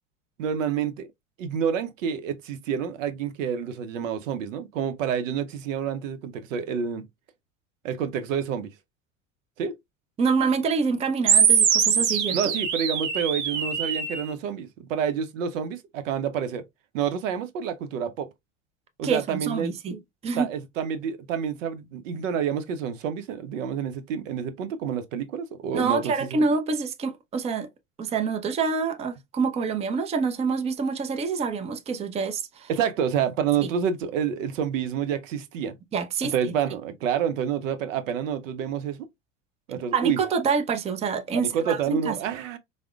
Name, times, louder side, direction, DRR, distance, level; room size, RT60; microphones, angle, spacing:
voice 1, 0.4-1.1 1.4-7.0 7.8-8.7 9.6-9.7 12.3-16.6 16.9-18.3 19.0-19.8 20.4-26.4 32.7-35.8 36.2-39.1 39.7-40.2 41.3-42.6, right 8 dB, 75° right, 0.7 m, -28 dB
voice 2, 10.2-12.4 19.0-20.0 20.2-20.5 25.7-27.7 28.0-32.7 35.9-36.3 39.9-42.1, right 5 dB, 15° right, 0.5 m, -26 dB
sound 1, 11.3-14.3, right 7 dB, 50° right, 1.0 m, -22 dB
4.7 x 2.1 x 2.3 m
hypercardioid pair, 80°, 39 cm